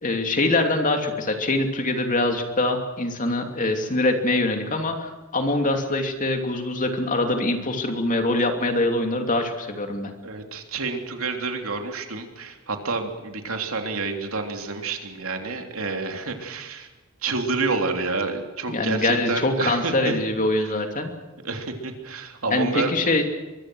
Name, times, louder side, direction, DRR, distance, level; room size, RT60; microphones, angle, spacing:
voice 1, 0.0-10.1 18.7-21.1 22.5-23.2, left 2 dB, 40° left, 5 dB, 2.8 m, -24 dB
voice 2, 10.2-16.9 17.2-20.2 21.4-22.9, right 3 dB, 70° right, 4 dB, 3.4 m, -29 dB
23.5 x 23.0 x 6.4 m, 1.2 s
head